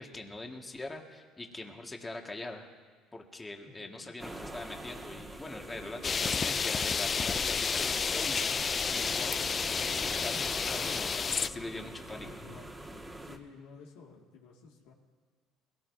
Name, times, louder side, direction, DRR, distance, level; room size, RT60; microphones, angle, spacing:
voice 1, 0.0-2.7 3.1-9.4 9.9-12.3, left 2 dB, 20° left, 2 dB, 1.8 m, -43 dB
voice 2, 3.7-4.1 12.2-14.9, left 5 dB, 80° left, -1 dB, 2.0 m, -53 dB
sound 1, 4.2-13.4, right 1 dB, 10° right, 1.7 m, -44 dB
sound 2, 6.0-11.5, left 5 dB, 35° left, 0.4 m, -30 dB
21.5 x 17.5 x 2.7 m, 1.5 s
supercardioid pair, 80°, 0 cm